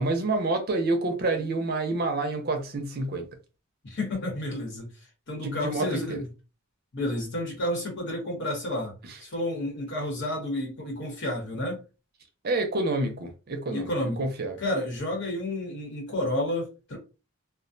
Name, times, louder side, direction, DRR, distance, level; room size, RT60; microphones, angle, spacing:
voice 1, 0.0-3.3 5.4-6.2 12.4-14.6, right 2 dB, 45° right, 0.5 m, -28 dB
voice 2, 3.8-4.9 5.3-6.3 6.9-8.9 9.2-11.8 13.7-14.2 14.6-17.0, left 1 dB, 50° left, 1.0 m, -30 dB
2.3 x 2.1 x 2.5 m
head